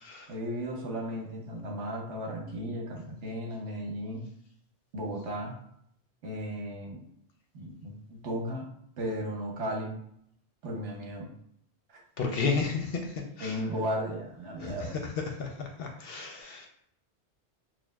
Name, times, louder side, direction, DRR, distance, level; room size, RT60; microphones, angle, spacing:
voice 1, 0.3-4.2 4.9-5.5 6.2-7.0 7.5-8.7 9.0-10.0 10.6-11.3 11.9-12.0 13.4-15.0, equal, 75° right, 0 dB, 1.2 m, -35 dB
voice 2, 12.2-13.6 14.6-14.9 15.2-16.7, left 4 dB, 65° left, 2 dB, 0.7 m, -32 dB
6.1 x 2.2 x 2.3 m, 0.69 s
omnidirectional pair, 1.2 m